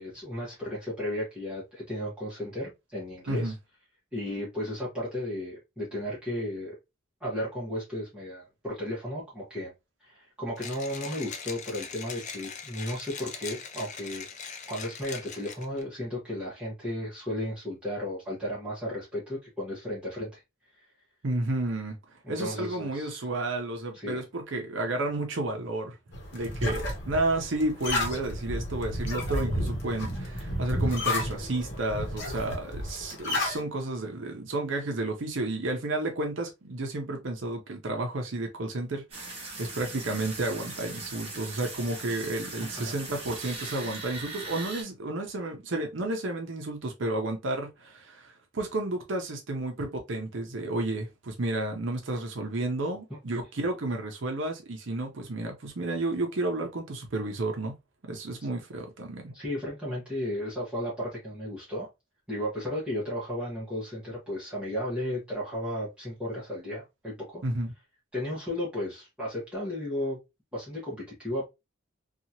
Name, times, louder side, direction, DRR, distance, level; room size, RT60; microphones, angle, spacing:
voice 1, 0.0-3.5 4.1-6.7 7.2-9.7 10.0-20.4 20.8-20.9 22.2-23.2 23.9-24.2 42.6-43.0 59.3-61.9 62.3-67.4 68.1-70.2 70.5-71.5, left 1 dB, 5° right, 1.0 m, -34 dB
Mechanisms, 10.6-15.8, left 6 dB, 35° left, 0.4 m, -41 dB
voice 2, 21.2-22.0 22.3-26.0 26.3-57.7 58.0-59.3 67.4-67.7, right 2 dB, 65° right, 0.6 m, -31 dB
sound 1, 26.1-33.6, left 1 dB, 55° left, 1.0 m, -32 dB
sound 2, 39.1-44.8, right 3 dB, 30° right, 1.0 m, -40 dB
2.8 x 2.4 x 2.7 m
head